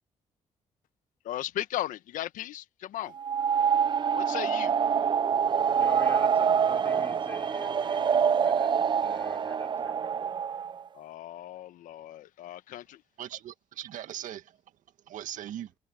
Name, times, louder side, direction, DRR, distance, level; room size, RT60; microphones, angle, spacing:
voice 1, 1.2-3.2 4.1-4.8 10.9-13.0, left 13 dB, 75° left, 1.1 m, -36 dB
sound 1, 3.1-10.8, right 7 dB, 35° right, 0.4 m, -26 dB
voice 2, 5.5-8.7 9.0-10.4, left 2 dB, 15° left, 4.3 m, -46 dB
voice 3, 13.2-14.6 15.1-15.7, right 11 dB, 75° right, 1.9 m, -39 dB
supercardioid pair, 55°, 14 cm